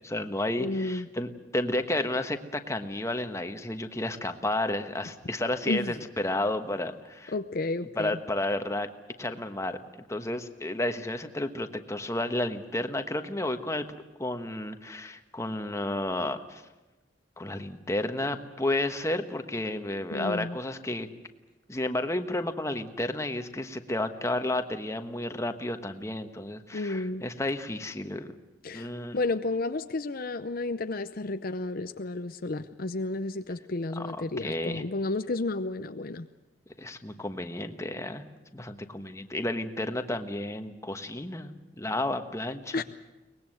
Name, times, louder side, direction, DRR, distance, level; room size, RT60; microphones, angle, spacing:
voice 1, 0.0-7.3 7.9-8.9 9.2-9.8 10.1-13.9 14.2-16.6 17.4-21.1 21.7-28.3 28.7-29.2 34.0-34.8 36.8-38.2 38.5-42.8, left 1 dB, 15° left, 7 dB, 1.2 m, -32 dB
voice 2, 0.6-1.1 5.7-5.9 7.3-8.2 20.1-20.6 26.7-27.2 28.6-36.3 42.7-42.8, left 2 dB, 55° left, 9 dB, 0.7 m, -32 dB
23.5 x 19.5 x 7.9 m, 1.1 s
head